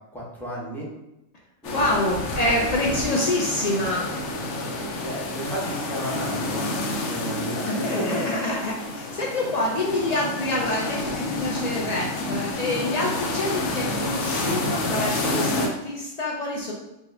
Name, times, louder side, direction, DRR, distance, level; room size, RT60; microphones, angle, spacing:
voice 1, 0.1-0.9 1.6-2.1 2.4-3.5 5.0-6.7 7.1-8.3, equal, ahead, -5 dB, 0.7 m, -34 dB
sound 1, 1.6-15.7, left 2 dB, 70° left, 0.9 m, -29 dB
voice 2, 1.7-4.1 7.6-16.7, left 1 dB, 90° left, -2 dB, 0.3 m, -26 dB
4.3 x 2.2 x 3.3 m, 0.93 s
omnidirectional pair, 1.3 m